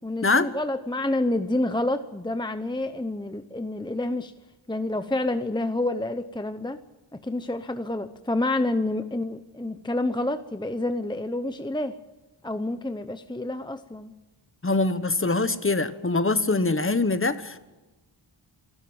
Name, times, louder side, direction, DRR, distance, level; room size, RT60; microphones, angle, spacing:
voice 1, 0.0-4.3 4.7-6.8 7.2-11.9 12.4-14.1, left 2 dB, 10° left, 10 dB, 0.8 m, -28 dB
voice 2, 14.6-17.6, left 3 dB, 25° left, 12 dB, 1.2 m, -23 dB
27.0 x 13.0 x 8.8 m, 1.2 s
wide cardioid pair, 85°, 47 cm